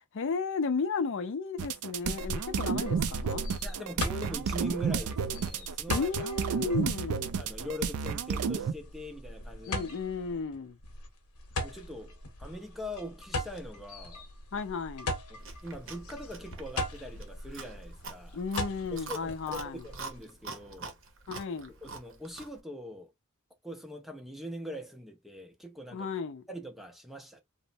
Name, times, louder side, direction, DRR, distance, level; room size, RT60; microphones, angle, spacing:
voice 1, 0.0-3.4 5.9-7.3 9.7-10.8 14.5-15.1 18.3-19.9 21.3-21.7 25.9-26.4, left 4 dB, 60° left, 0.4 m, -34 dB
sound 1, 1.6-8.7, right 6 dB, 90° right, 0.4 m, -31 dB
sound 2, 2.0-20.2, left 1 dB, 80° left, 0.8 m, -40 dB
voice 2, 3.6-6.3 7.4-9.9 11.6-14.3 15.3-18.4 18.9-21.0 21.6-23.1 23.6-26.1 26.5-27.4, equal, ahead, 0.5 m, -42 dB
Chewing mastication, 15.4-22.6, right 4 dB, 65° right, 0.7 m, -45 dB
3.0 x 2.0 x 2.6 m
head